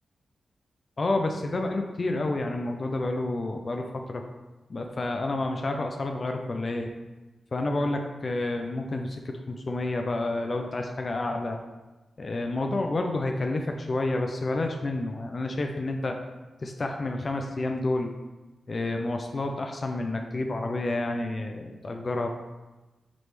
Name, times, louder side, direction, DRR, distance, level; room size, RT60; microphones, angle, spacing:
voice 1, 1.0-4.2 4.7-6.9 7.5-11.6 12.2-16.2 16.6-18.1 18.7-22.3, left 2 dB, 45° left, 3 dB, 0.5 m, -29 dB
9.1 x 3.3 x 3.2 m, 1.1 s
cardioid pair, 65°, 0 cm